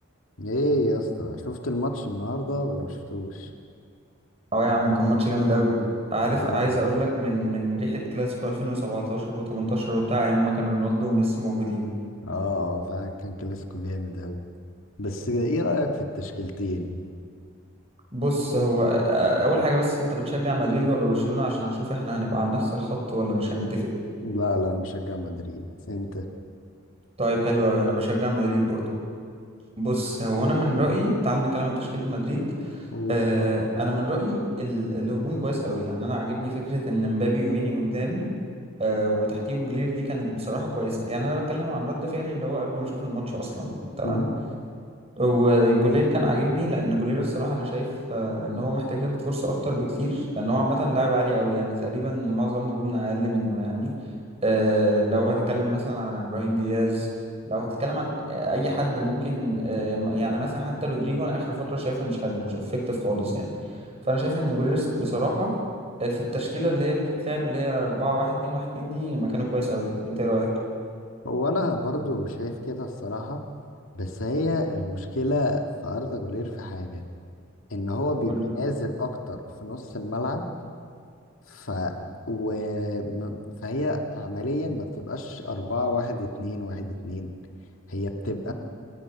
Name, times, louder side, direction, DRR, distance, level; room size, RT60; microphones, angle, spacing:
voice 1, 0.4-3.5 6.3-6.8 12.2-14.4 15.0-17.0 24.2-26.3 32.9-33.2 44.0-44.3 71.2-73.4 73.9-77.0 77.7-80.4 81.5-81.9 82.3-83.4 83.6-87.3 87.9-88.5, left 1 dB, 85° left, 2 dB, 2.1 m, -29 dB
voice 2, 4.5-5.7 6.1-11.9 18.1-23.9 27.2-28.8 29.8-38.3 38.8-43.7 44.0-44.3 45.2-53.9 54.4-57.1 57.5-63.5 64.0-65.5 66.0-70.5 78.2-78.4 88.4-88.5, equal, 30° right, 0 dB, 5.8 m, -25 dB
29.0 x 18.5 x 6.1 m, 2.2 s
head